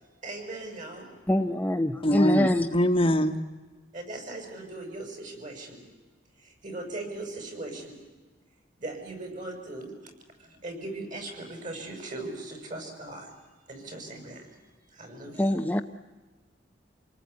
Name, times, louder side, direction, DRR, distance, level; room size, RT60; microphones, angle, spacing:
voice 1, 0.2-1.1 3.9-5.8 6.4-7.9 8.8-9.9 10.4-13.3 13.7-14.5 14.9-15.5, right 2 dB, 45° right, 6.8 m, -39 dB
voice 2, 1.3-2.7 15.4-15.8, left 1 dB, 10° left, 0.7 m, -24 dB
voice 3, 2.0-3.4, equal, 30° left, 1.3 m, -23 dB
27.5 x 19.5 x 9.6 m
head